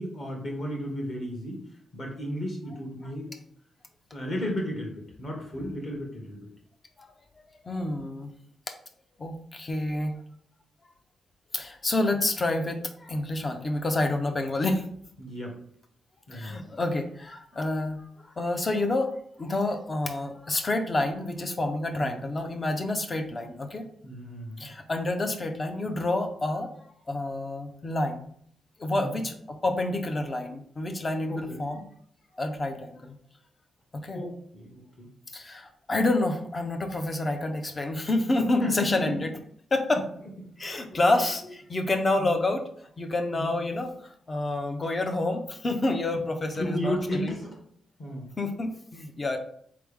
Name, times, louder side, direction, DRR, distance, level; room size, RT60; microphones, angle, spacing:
voice 1, 0.0-1.7 1.9-3.3 4.1-6.5 15.2-15.5 16.3-16.6 21.9-22.2 24.0-24.7 28.9-29.2 31.3-31.6 34.1-35.1 38.6-39.1 39.9-40.0 40.7-41.0 42.2-42.3 43.3-43.5 46.5-47.6 48.0-48.3, equal, 40° left, 0 dB, 1.3 m, -34 dB
voice 2, 7.6-8.3 9.2-10.2 11.5-14.8 16.3-18.1 18.4-23.9 24.6-26.7 27.1-28.2 28.8-31.8 32.4-33.2 33.9-34.2 35.3-39.3 39.7-40.0 40.6-42.6 43.0-43.9 44.3-47.3 48.4-49.4, left 2 dB, 20° left, 6 dB, 0.5 m, -28 dB
4.2 x 3.3 x 3.4 m, 0.64 s
wide cardioid pair, 175°, 0 cm